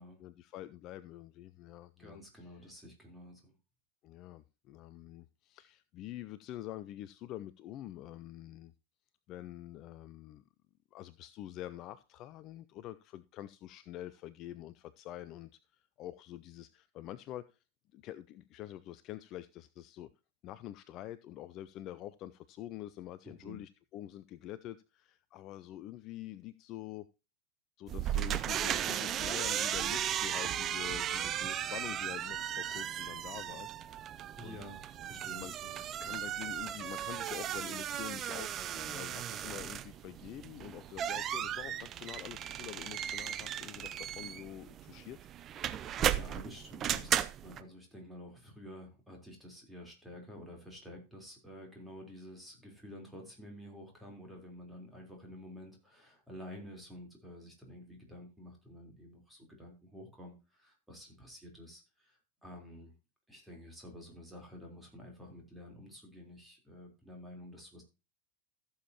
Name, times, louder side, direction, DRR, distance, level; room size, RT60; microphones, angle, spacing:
voice 1, 0.2-2.7 4.0-8.7 9.3-10.4 10.9-17.6 17.9-20.1 20.4-27.1 27.8-33.7 34.4-34.6 35.4-35.5 36.0-45.2, left 13 dB, 35° left, 0.4 m, -46 dB
voice 2, 2.0-3.5 23.2-23.6 34.4-35.9 46.0-62.9 63.3-67.8, left 1 dB, 5° right, 3.8 m, -50 dB
sound 1, 27.9-47.6, right 10 dB, 30° right, 0.6 m, -36 dB
15.0 x 7.1 x 2.9 m
figure-of-eight pair, 90°, 0 cm